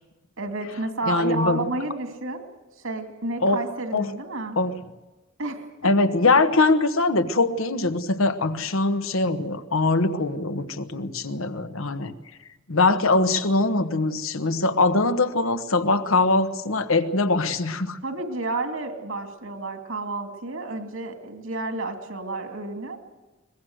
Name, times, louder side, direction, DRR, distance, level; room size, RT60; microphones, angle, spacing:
voice 1, 0.4-2.4 2.8-4.6 5.4-5.6 6.0-6.1 18.0-23.0, right 2 dB, 75° right, 5 dB, 2.7 m, -30 dB
voice 2, 1.1-1.7 3.4-3.6 3.9-4.1 4.6-4.8 5.8-12.1 12.7-18.0, left 3 dB, 75° left, 9 dB, 1.3 m, -22 dB
22.5 x 20.5 x 8.0 m, 1.1 s
head